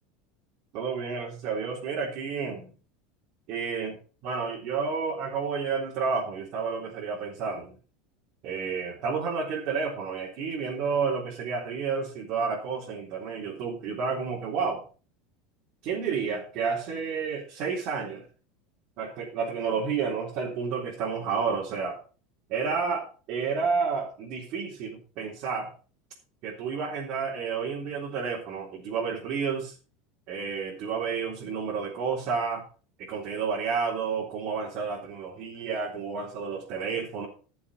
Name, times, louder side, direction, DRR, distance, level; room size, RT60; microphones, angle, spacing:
voice 1, 0.7-2.7 3.5-4.0 4.2-7.7 8.4-14.8 15.8-18.2 19.0-22.0 22.5-25.7 26.4-29.7 30.3-32.6 33.0-37.3, right 5 dB, 45° right, -5 dB, 3.6 m, -30 dB
13.0 x 7.1 x 5.4 m, 0.37 s
supercardioid pair, 155°, 0 cm